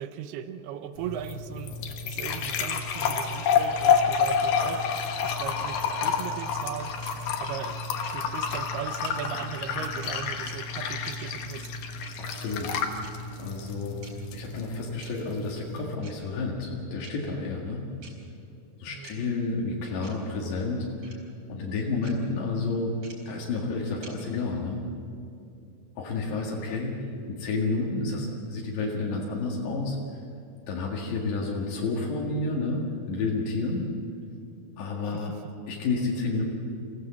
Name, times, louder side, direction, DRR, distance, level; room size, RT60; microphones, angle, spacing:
voice 1, 0.0-1.8 2.0-4.9 5.2-7.0 7.4-7.8 8.1-11.7 18.9-19.4 26.3-26.9 35.1-35.4, right 9 dB, 75° right, 10 dB, 2.7 m, -38 dB
sound 1, 1.0-15.9, left 6 dB, 65° left, 2.7 m, -29 dB
sound 2, 6.0-6.1 7.0-7.1 8.0-8.1 9.0-9.1 10.0-10.1 11.0-11.2 12.0-12.1 13.0-13.1 14.0-14.1 15.0-15.1 16.0-16.1 17.0-17.1 18.0-18.1 19.0-19.1 20.0-20.1 21.0-21.1 22.0-22.1 23.0-23.1 24.0-24.1, right 4 dB, 50° right, 5.8 m, -47 dB
voice 2, 12.2-12.8 13.4-14.0 14.3-17.8 18.8-21.2 21.5-22.9 23.3-24.8 26.0-27.0 27.3-30.0 30.7-33.9 34.8-35.3 35.7-36.4, left 3 dB, 85° left, -3 dB, 4.2 m, -30 dB
26.5 x 16.0 x 7.6 m, 2.6 s
omnidirectional pair, 4.8 m